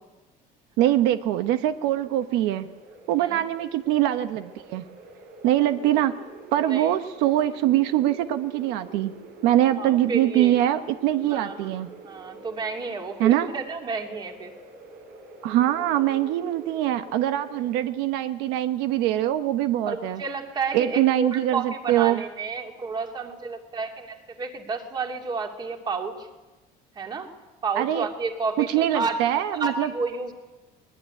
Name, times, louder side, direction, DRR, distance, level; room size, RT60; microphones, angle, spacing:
voice 1, 0.8-2.7 3.1-4.8 5.4-6.2 6.5-9.1 9.4-11.9 13.2-13.5 15.4-20.2 20.7-22.2 27.7-28.1 28.6-29.9, right 13 dB, 85° right, 9 dB, 1.1 m, -23 dB
sound 1, 1.6-17.9, right 3 dB, 65° right, 5.2 m, -46 dB
voice 2, 9.8-10.5 11.3-11.7 12.0-14.5 19.8-26.3 26.9-27.3 27.6-30.3, right 4 dB, 25° right, 3 dB, 2.6 m, -31 dB
21.5 x 21.0 x 9.9 m, 1.1 s
cardioid pair, 175°, 17 cm